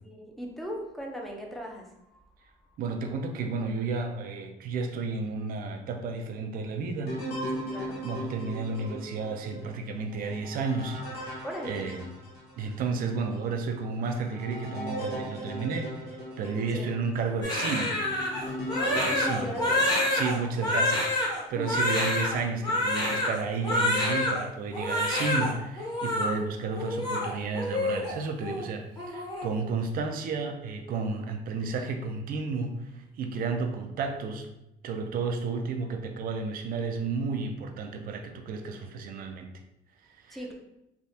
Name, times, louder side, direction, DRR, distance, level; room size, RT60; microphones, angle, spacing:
voice 1, 0.0-2.2 7.5-8.1 11.4-11.9 12.5-12.6 16.7-16.9 18.8-19.9 21.6-21.7 40.3-40.5, equal, ahead, 0 dB, 0.6 m, -37 dB
voice 2, 2.8-7.2 8.0-12.1 12.6-18.0 18.9-19.5 20.1-34.5 34.8-39.5 40.2-40.4, right 4 dB, 60° right, 5 dB, 0.5 m, -32 dB
sound 1, 7.1-12.8 13.3-13.4 14.0-21.2 21.8-22.4, equal, 65° left, 1.0 m, -38 dB
Crying sobbing, 17.4-24.4 24.7-25.5 25.8-26.3 26.7-28.1 28.4-28.6 29.0-29.4, left 1 dB, 25° left, 1.1 m, -27 dB
3.3 x 2.4 x 2.7 m, 0.87 s
cardioid pair, 110°, 17 cm